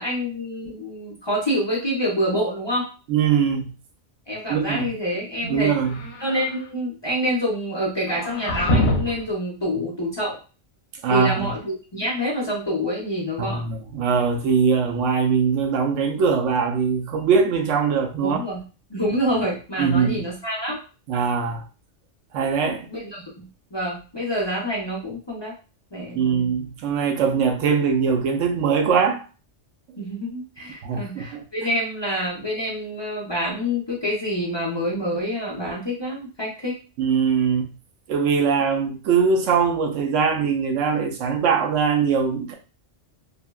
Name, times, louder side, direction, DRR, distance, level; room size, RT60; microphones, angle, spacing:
voice 1, 0.0-2.9 4.3-5.8 6.2-10.4 11.1-13.6 18.2-18.6 18.9-20.8 22.9-23.5 23.7-25.5 25.9-26.5 30.0-36.7, equal, 30° left, 0.6 m, -27 dB
voice 2, 3.1-3.7 4.5-4.9 5.4-6.0 11.0-11.5 13.4-18.4 19.8-20.3 21.1-21.6 22.3-22.9 26.2-29.2 30.8-31.4 37.0-37.7 38.1-42.5, right 6 dB, 90° right, 0.9 m, -21 dB
sound 1, 5.8-6.6 8.1-9.3, left 1 dB, 60° left, 0.9 m, -25 dB
3.3 x 2.1 x 2.3 m
omnidirectional pair, 1.2 m